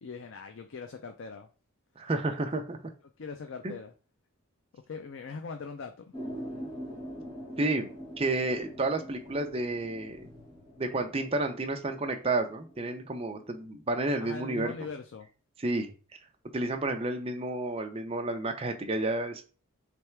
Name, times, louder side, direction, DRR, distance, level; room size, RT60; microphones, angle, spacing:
voice 1, 0.0-1.5 3.2-3.9 4.7-5.9 14.2-15.3, left 5 dB, 60° left, 0.4 m, -41 dB
voice 2, 2.0-2.8 3.6-3.8 7.6-7.9 8.2-10.3 10.8-14.7 15.6-15.9 16.5-19.4, right 2 dB, 25° right, 0.5 m, -31 dB
sound 1, 6.1-13.6, equal, 25° left, 1.3 m, -44 dB
3.5 x 3.2 x 4.4 m
head